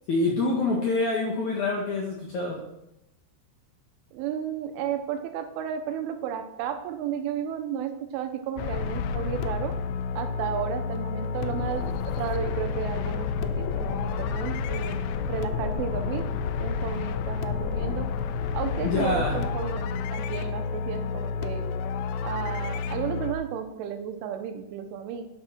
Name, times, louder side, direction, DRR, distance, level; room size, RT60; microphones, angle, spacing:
voice 1, 0.1-2.6 18.8-19.4, left 3 dB, 65° left, -3 dB, 2.0 m, -26 dB
voice 2, 4.1-9.8 10.2-16.3 16.6-18.1 18.5-21.7 22.2-25.3, right 9 dB, 85° right, 7 dB, 3.3 m, -33 dB
sound 1, 8.6-23.3, left 6 dB, 85° left, 2.5 m, -30 dB
10.5 x 6.0 x 6.1 m, 0.83 s
omnidirectional pair, 5.6 m